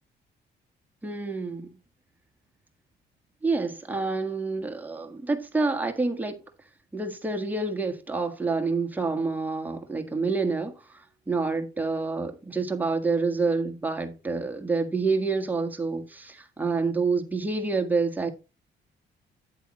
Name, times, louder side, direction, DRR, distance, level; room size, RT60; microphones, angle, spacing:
voice 1, 1.0-1.8 3.4-6.4 6.9-18.3, right 3 dB, 10° right, 1.5 m, -28 dB
8.8 x 8.2 x 3.0 m
cardioid pair, 90°, 20 cm